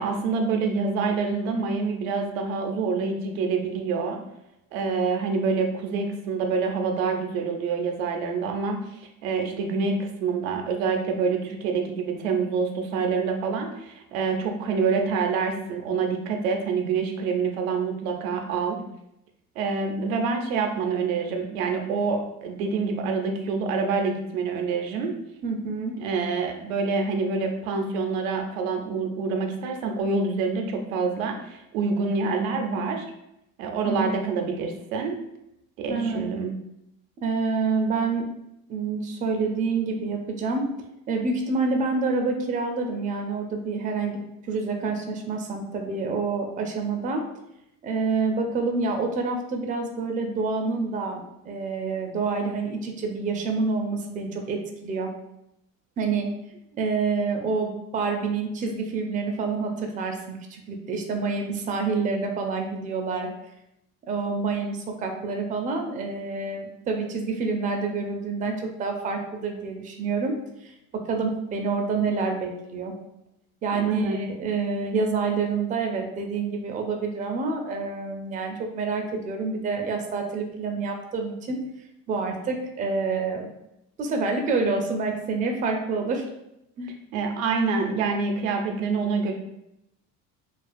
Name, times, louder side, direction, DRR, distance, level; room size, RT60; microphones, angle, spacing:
voice 1, 0.0-4.2 4.7-8.8 9.2-18.8 19.6-25.1 26.0-33.1 33.6-35.2 35.8-36.5 73.7-74.2 87.1-89.3, right 4 dB, 80° right, 3 dB, 0.5 m, -26 dB
voice 2, 25.4-25.9 33.8-34.1 35.9-36.3 37.2-38.3 38.7-40.7 41.1-44.2 44.5-47.2 47.8-55.1 56.0-56.3 56.8-63.3 64.1-70.3 70.6-70.7 71.1-72.9 73.6-81.6 82.1-83.5 84.0-86.3 86.8-86.9, right 4 dB, 20° right, 3 dB, 0.3 m, -27 dB
2.3 x 2.3 x 2.4 m, 0.83 s
hypercardioid pair, 70°, 41 cm